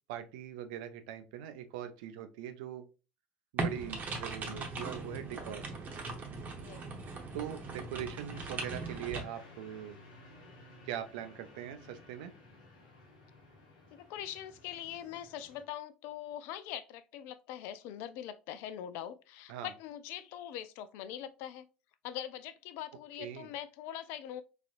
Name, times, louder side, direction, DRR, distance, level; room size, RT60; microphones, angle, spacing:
voice 1, 0.1-2.9 3.5-5.6 7.3-10.0 10.8-12.3 19.5-19.7 23.2-23.5, right 10 dB, 65° right, 0.5 m, -41 dB
sound 1, 3.6-9.2, right 3 dB, 40° right, 0.9 m, -39 dB
sound 2, 8.3-15.6, left 2 dB, 75° left, 0.9 m, -55 dB
voice 2, 13.9-21.7 22.0-24.4, left 11 dB, 60° left, 0.3 m, -42 dB
4.1 x 2.5 x 2.4 m
figure-of-eight pair, 60°, 4 cm